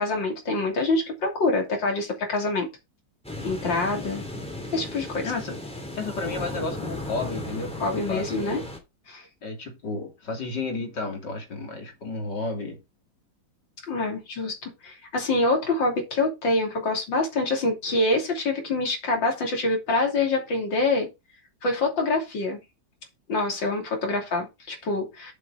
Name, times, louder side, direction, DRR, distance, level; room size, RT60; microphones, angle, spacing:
voice 1, 0.0-2.7 3.4-4.2 4.7-5.3 7.8-8.6 9.1-9.2 13.9-21.1 21.6-22.6 23.3-25.3, left 2 dB, 90° left, 3.6 m, -25 dB
sound 1, 3.2-8.8, left 1 dB, 5° left, 2.9 m, -35 dB
voice 2, 5.2-5.6 5.9-8.7 9.4-12.8, left 3 dB, 70° left, 3.4 m, -32 dB
7.7 x 7.6 x 3.9 m
omnidirectional pair, 2.0 m